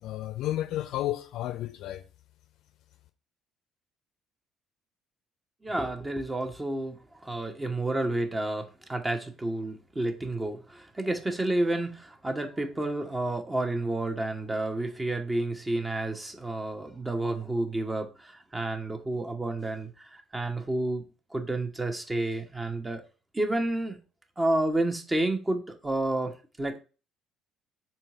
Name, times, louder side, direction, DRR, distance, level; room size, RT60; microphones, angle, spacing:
voice 1, 0.0-2.0, left 14 dB, 60° left, 0.7 m, -32 dB
voice 2, 5.6-21.0 21.3-23.0 23.3-24.0 24.4-26.8, right 2 dB, 20° right, 1.2 m, -30 dB
4.4 x 3.9 x 5.4 m
figure-of-eight pair, 50°, 0 cm